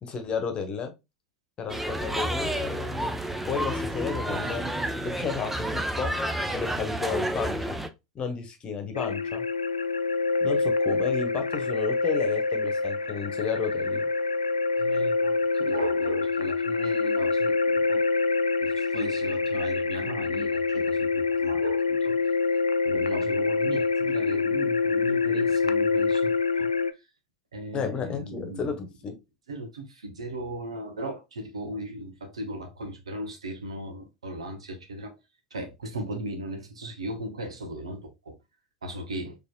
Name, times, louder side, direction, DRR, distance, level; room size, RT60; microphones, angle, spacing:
voice 1, 0.0-0.9 1.6-3.2 3.4-4.6 5.0-6.1 6.5-7.8 8.1-9.5 10.4-14.1 27.7-29.2, left 6 dB, 35° left, 1.1 m, -32 dB
sound 1, 1.7-7.9, right 1 dB, 5° right, 0.6 m, -30 dB
sound 2, 8.9-26.9, left 4 dB, 90° left, 0.4 m, -26 dB
voice 2, 14.8-18.0 18.6-22.2 22.8-26.7 27.5-28.7 29.5-35.1 35.5-38.3 38.8-39.4, right 1 dB, 80° right, 1.1 m, -36 dB
4.3 x 3.2 x 2.4 m
figure-of-eight pair, 85°, 3 cm